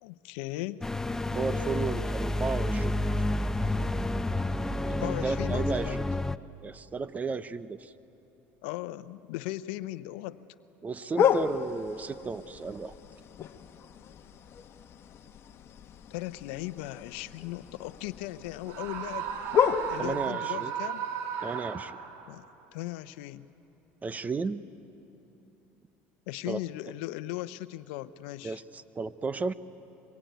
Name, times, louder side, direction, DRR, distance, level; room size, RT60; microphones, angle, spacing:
voice 1, 0.0-0.8 5.0-6.0 8.6-10.4 16.1-19.3 19.9-21.1 22.3-22.5 22.7-23.5 26.3-28.6, left 16 dB, 80° left, 14 dB, 0.7 m, -37 dB
sound 1, 0.8-6.4, left 1 dB, 10° left, 0.6 m, -29 dB
voice 2, 1.3-3.0 4.8-6.1 6.6-7.9 10.8-12.9 20.0-20.7 21.4-22.0 24.0-24.6 26.4-26.6 28.4-29.5, right 4 dB, 25° right, 14 dB, 0.9 m, -34 dB
sound 2, 11.2-20.3, left 8 dB, 45° left, 1.3 m, -32 dB
Screaming, 18.7-22.4, right 9 dB, 70° right, 2.0 m, -35 dB
24.5 x 22.5 x 9.3 m, 3.0 s
supercardioid pair, 90°, 6 cm